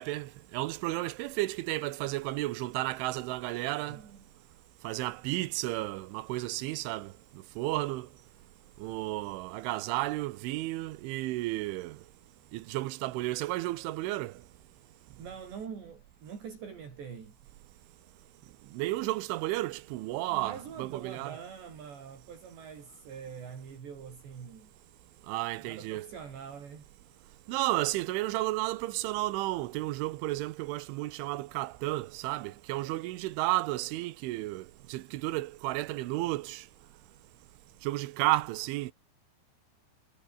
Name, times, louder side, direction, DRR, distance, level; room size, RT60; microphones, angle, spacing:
voice 1, 0.0-4.0 4.8-7.1 7.6-8.1 8.8-12.0 12.5-14.3 18.7-21.4 25.3-26.1 27.5-36.6 37.8-38.9, right 18 dB, 90° right, 3.4 m, -32 dB
voice 2, 3.9-4.2 15.2-17.4 20.3-24.7 25.6-26.9, right 7 dB, 65° right, 6.7 m, -44 dB
omnidirectional pair, 5.5 m